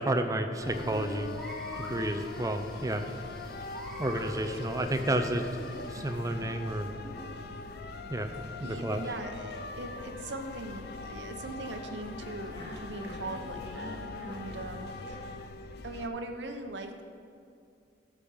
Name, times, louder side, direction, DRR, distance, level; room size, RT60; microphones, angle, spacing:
voice 1, 0.0-1.4 1.8-3.1 4.0-7.3 8.1-8.3 8.6-9.0, right 1 dB, 20° right, 6 dB, 0.6 m, -31 dB
sound 1, 0.6-16.1, left 4 dB, 60° left, 0.5 m, -42 dB
sound 2, 0.6-6.1, equal, 5° left, 1.4 m, -48 dB
sound 3, 2.7-15.2, left 1 dB, 25° left, 2.2 m, -50 dB
voice 2, 8.6-15.3 15.8-17.0, right 2 dB, 75° right, 5 dB, 0.8 m, -40 dB
13.0 x 5.3 x 5.5 m, 2.3 s
head